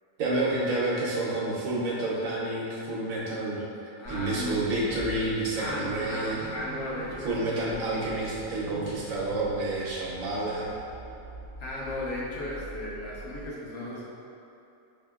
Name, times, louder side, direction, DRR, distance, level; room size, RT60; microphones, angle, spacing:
voice 1, 0.2-6.5 7.2-10.8, right 2 dB, 70° right, -6 dB, 1.2 m, -29 dB
voice 2, 4.0-4.6 5.5-7.9 11.6-14.0, left 1 dB, 80° left, -6 dB, 1.3 m, -35 dB
Car / Idling / Accelerating revving vroom, 4.0-13.5, right 2 dB, 35° left, 0.8 m, -45 dB
5.8 x 2.8 x 2.3 m, 2.7 s
omnidirectional pair, 1.5 m